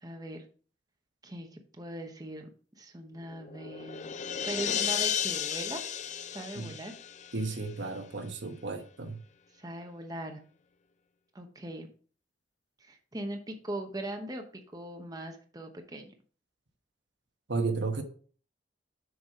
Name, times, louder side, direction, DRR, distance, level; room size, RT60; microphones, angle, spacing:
voice 1, 0.0-0.4 1.2-2.5 2.8-4.1 4.4-5.8 6.3-6.9 9.6-10.4 11.3-11.9 12.8-16.1, right 1 dB, 20° right, 0.9 m, -40 dB
sound 1, 3.2-7.8, left 8 dB, 40° left, 0.5 m, -34 dB
voice 2, 7.3-9.2 17.5-18.0, right 3 dB, 75° right, 1.2 m, -33 dB
6.5 x 5.5 x 5.1 m
head